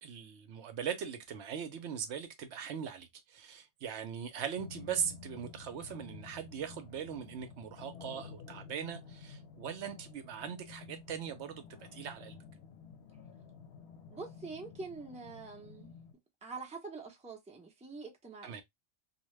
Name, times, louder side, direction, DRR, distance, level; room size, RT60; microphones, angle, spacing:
voice 1, 0.0-11.6 11.9-12.4 18.4-18.6, right 8 dB, 75° right, 0.9 m, -40 dB
sound 1, 4.6-16.1, left 5 dB, 65° left, 0.8 m, -51 dB
voice 2, 14.1-15.9 16.4-18.6, right 4 dB, 10° right, 0.5 m, -45 dB
2.8 x 2.2 x 3.0 m
omnidirectional pair, 1.2 m